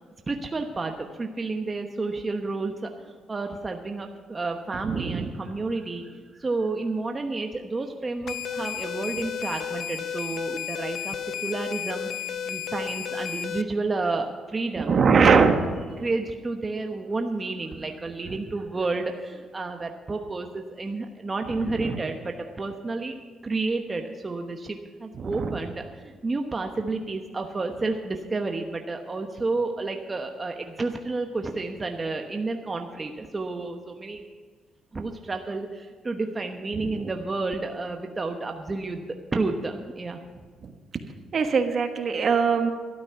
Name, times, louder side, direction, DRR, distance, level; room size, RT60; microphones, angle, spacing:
voice 1, 0.3-11.2 11.4-15.2 16.0-23.2 23.4-34.2 34.9-40.2, right 3 dB, 25° right, 4 dB, 1.0 m, -31 dB
voice 2, 4.8-5.3 14.8-15.6 21.6-22.0 25.2-25.6 36.7-37.1 40.6-40.7 41.3-42.7, right 5 dB, 50° right, 6 dB, 1.3 m, -22 dB
sound 1, 8.3-13.6, left 8 dB, 65° left, 0.6 m, -32 dB
12.5 x 12.0 x 5.8 m, 1.5 s
cardioid pair, 90°, 0 cm